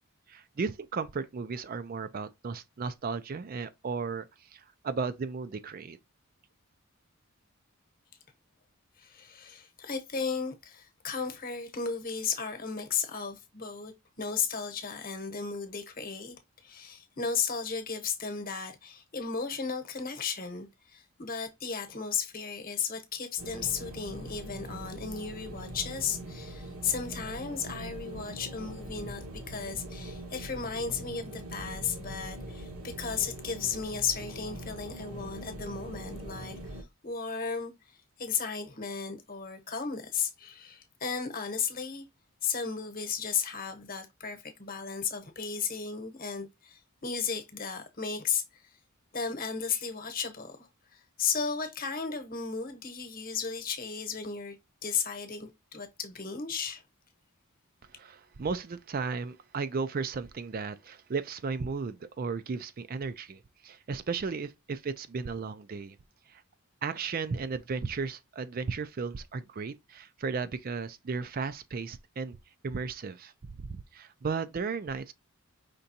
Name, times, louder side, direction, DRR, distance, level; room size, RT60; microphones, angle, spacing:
voice 1, 0.3-4.3 4.5-6.0 57.9-66.0 66.3-66.4 66.8-72.4 72.6-73.3 73.6-75.1, right 5 dB, 40° right, 0.4 m, -35 dB
voice 2, 9.0-16.3 16.6-37.7 38.2-42.0 42.4-48.6 49.1-54.6 54.8-56.8, left 6 dB, 40° left, 1.0 m, -35 dB
sound 1, 23.4-36.8, right 1 dB, 80° right, 1.4 m, -42 dB
5.2 x 3.4 x 2.7 m
head